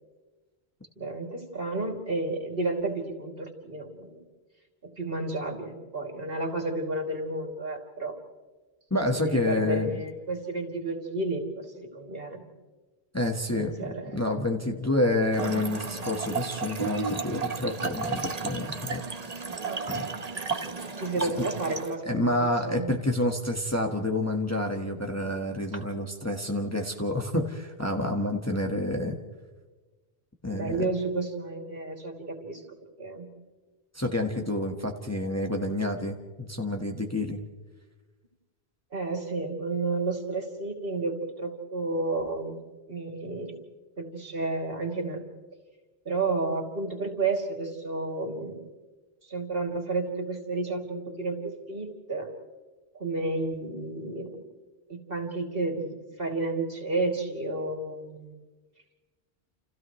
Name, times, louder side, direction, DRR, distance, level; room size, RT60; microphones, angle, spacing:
voice 1, 1.0-4.2 4.8-8.2 9.2-12.5 13.5-14.2 14.6-14.8 17.6-17.8 19.6-19.8 21.0-22.9 30.5-32.6 33.0-33.3 38.9-42.6 42.9-43.6 44.0-45.2 46.0-48.6 49.2-52.3 52.9-54.5 54.9-58.4, right 2 dB, 55° right, 1 dB, 3.0 m, -31 dB
voice 2, 8.9-10.0 13.1-19.0 19.4-19.6 19.9-20.1 21.2-21.3 22.0-29.2 30.4-30.9 33.9-37.4, left 1 dB, 15° left, 2 dB, 1.5 m, -28 dB
Trickle dribble / Fill (with liquid), 15.3-22.0, right 4 dB, 35° right, 1.2 m, -33 dB
29.5 x 29.0 x 3.2 m, 1.3 s
omnidirectional pair, 1.1 m